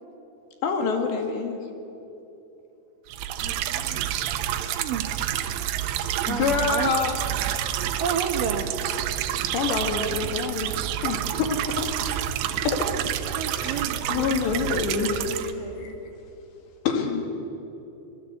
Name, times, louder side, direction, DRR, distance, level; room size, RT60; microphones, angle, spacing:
voice 1, 0.6-1.6 6.3-7.2 9.5-10.7 11.0-11.9 12.7-12.9 13.5-15.3 16.9-17.2, left 5 dB, 80° left, 5 dB, 4.4 m, -26 dB
sound 1, 3.1-15.5, right 11 dB, 85° right, 3.3 m, -28 dB
voice 2, 3.4-4.0 12.0-12.3 15.2-15.9, right 1 dB, 35° right, 1 dB, 1.8 m, -40 dB
voice 3, 4.8-5.1 6.2-6.9 8.0-8.7 13.4-14.4, right 7 dB, 60° right, 4 dB, 2.6 m, -30 dB
26.0 x 21.5 x 8.3 m, 2.9 s
omnidirectional pair, 5.0 m